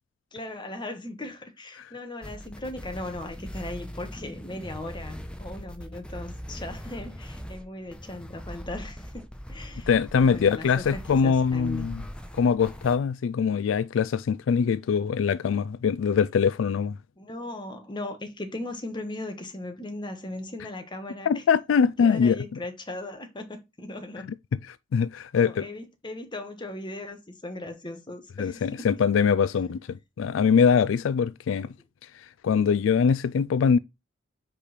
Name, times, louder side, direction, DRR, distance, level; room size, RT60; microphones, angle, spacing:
voice 1, 0.3-9.9 10.2-11.9 17.2-21.4 22.0-24.3 25.3-28.9 29.4-29.6 31.6-31.7, left 1 dB, 25° left, 1.4 m, -38 dB
sound 1, 2.2-13.0, equal, 5° left, 0.8 m, -41 dB
voice 2, 9.9-12.0 12.4-17.0 21.3-22.4 24.7-25.7 28.4-31.7 32.4-33.8, left 6 dB, 90° left, 0.4 m, -23 dB
5.2 x 4.9 x 4.3 m
head